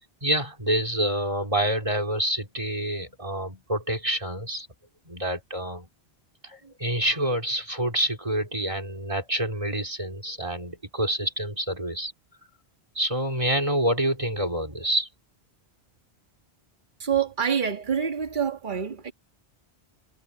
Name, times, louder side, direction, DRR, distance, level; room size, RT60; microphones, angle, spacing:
voice 1, 0.2-4.7 5.0-5.9 6.4-12.1 12.9-15.1, right 1 dB, 30° right, 3.3 m, -27 dB
voice 2, 17.0-19.1, right 7 dB, 45° right, 1.9 m, -26 dB
omnidirectional pair, 1.1 m